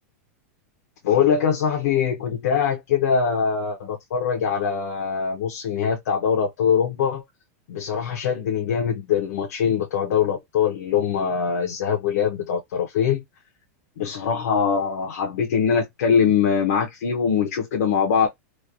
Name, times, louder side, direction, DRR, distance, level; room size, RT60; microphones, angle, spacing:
voice 1, 1.0-7.2 7.7-13.2 14.0-18.3, left 7 dB, 80° left, 0.8 m, -22 dB
3.1 x 2.2 x 2.5 m
supercardioid pair, 175°, 8 cm